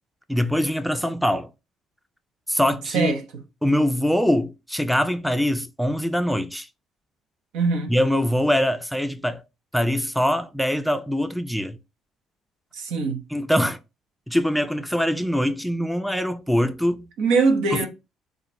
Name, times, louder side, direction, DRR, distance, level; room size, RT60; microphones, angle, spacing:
voice 1, 0.3-1.5 2.5-3.1 3.6-6.7 7.9-9.4 9.7-11.8 13.3-13.8 14.3-17.1 17.7-17.9, equal, ahead, 0.4 m, -23 dB
voice 2, 7.5-7.9 12.7-13.2 17.2-17.9, right 4 dB, 75° right, 0.8 m, -22 dB
2.9 x 2.5 x 4.0 m
hypercardioid pair, 60°, 0 cm